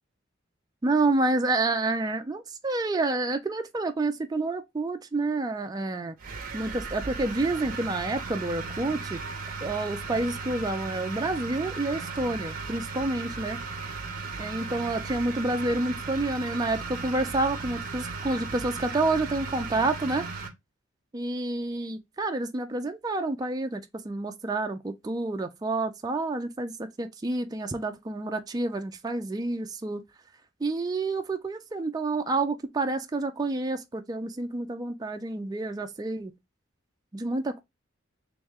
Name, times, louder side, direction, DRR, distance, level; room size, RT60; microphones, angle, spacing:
voice 1, 0.8-6.2 6.5-9.2 9.6-13.6 14.4-20.3 21.1-30.0 30.6-36.3 37.1-37.6, right 2 dB, 20° right, 0.4 m, -29 dB
sound 1, 6.2-20.5, right 4 dB, 45° right, 0.8 m, -36 dB
3.1 x 3.1 x 3.5 m
head